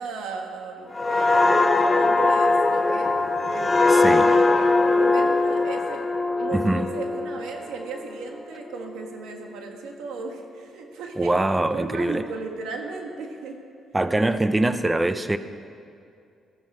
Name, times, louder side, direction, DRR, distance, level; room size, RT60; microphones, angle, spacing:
voice 1, 0.0-3.2 3.5-6.0 6.4-11.3 11.7-13.6, right 4 dB, 90° right, 3 dB, 1.6 m, -36 dB
sound 1, 0.9-8.4 8.8-9.1, left 3 dB, 20° left, 0.8 m, -21 dB
voice 2, 3.9-4.3 6.5-6.9 11.2-12.2 13.9-15.4, right 1 dB, 15° right, 11 dB, 0.6 m, -23 dB
15.0 x 13.5 x 4.9 m, 2.5 s
cardioid pair, 90°, 0 cm